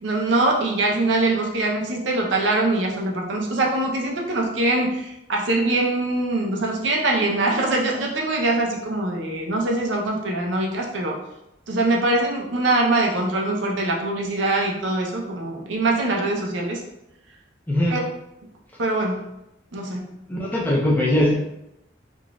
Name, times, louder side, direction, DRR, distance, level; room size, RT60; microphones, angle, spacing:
voice 1, 0.0-11.2 11.7-16.8 17.9-18.0 18.8-19.2 19.7-20.1, right 2 dB, 85° right, 0 dB, 0.6 m, -23 dB
voice 2, 17.7-18.0 20.3-21.3, left 1 dB, 10° left, -4 dB, 0.6 m, -20 dB
3.7 x 2.4 x 2.3 m, 0.86 s
head